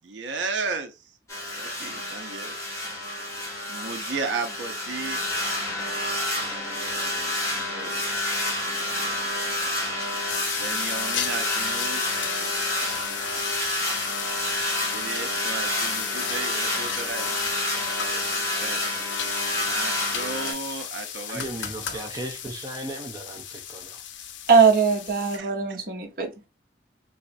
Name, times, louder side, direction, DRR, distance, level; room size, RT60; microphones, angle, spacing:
voice 1, 0.0-0.9 1.6-2.6 3.7-5.2 7.7-8.0 8.9-9.0 10.6-12.0 14.9-17.3 18.6-18.8 19.5-21.4 21.8-22.1 25.3-25.5, right 4 dB, 80° right, 0.6 m, -34 dB
sound 1, 1.3-20.5, left 1 dB, 15° left, 1.4 m, -29 dB
sound 2, 10.3-25.4, left 9 dB, 85° left, 0.5 m, -34 dB
voice 2, 21.3-24.1, right 1 dB, 20° right, 0.4 m, -36 dB
voice 3, 24.5-26.5, right 5 dB, 50° right, 0.9 m, -20 dB
4.0 x 2.4 x 2.5 m
head